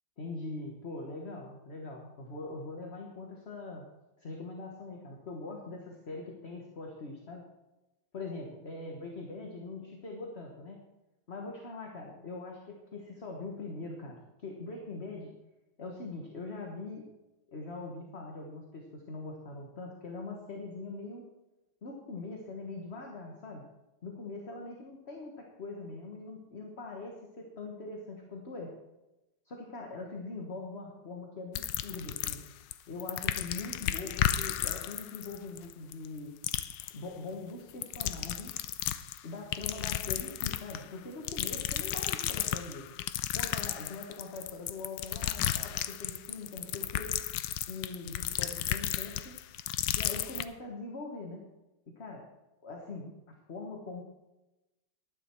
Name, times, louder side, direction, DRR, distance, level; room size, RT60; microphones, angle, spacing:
voice 1, 0.2-3.9 4.2-7.4 8.1-10.8 11.3-15.3 15.8-17.0 17.5-21.2 21.8-23.6 24.0-28.7 29.4-32.5 32.9-36.3 36.9-38.5 39.2-42.9 43.3-47.2 47.7-49.4 50.0-51.4 51.9-52.3 52.6-54.0, left 3 dB, 40° left, 0 dB, 1.6 m, -42 dB
sound 1, 31.6-32.7 33.0-36.2 36.4-36.9 37.7-39.2 39.5-40.8 41.3-50.5, left 12 dB, 80° left, 1.3 m, -33 dB
12.0 x 11.0 x 4.6 m, 0.99 s
omnidirectional pair, 2.0 m